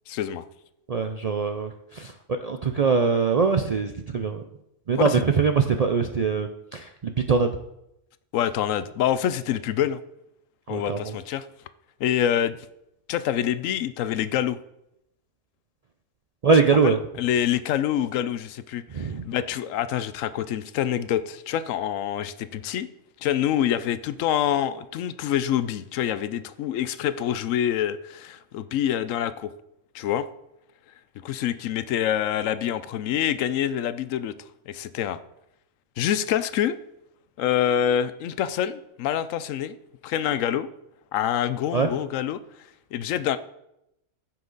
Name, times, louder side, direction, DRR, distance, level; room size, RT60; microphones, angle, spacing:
voice 1, 0.1-0.4 5.0-5.1 8.3-10.0 10.7-11.4 12.0-12.6 13.1-14.6 16.8-22.9 23.2-29.5 29.9-30.3 31.2-34.3 34.7-35.2 36.0-36.8 37.4-39.8 40.0-40.7 41.1-42.4 42.9-43.4, left 10 dB, 80° left, 14 dB, 1.0 m, -26 dB
voice 2, 0.9-4.4 4.9-7.5 10.7-11.2 16.4-17.0 18.9-19.2 41.7-41.9, right 5 dB, 60° right, 6 dB, 0.4 m, -23 dB
14.5 x 5.9 x 3.9 m, 0.84 s
omnidirectional pair, 1.3 m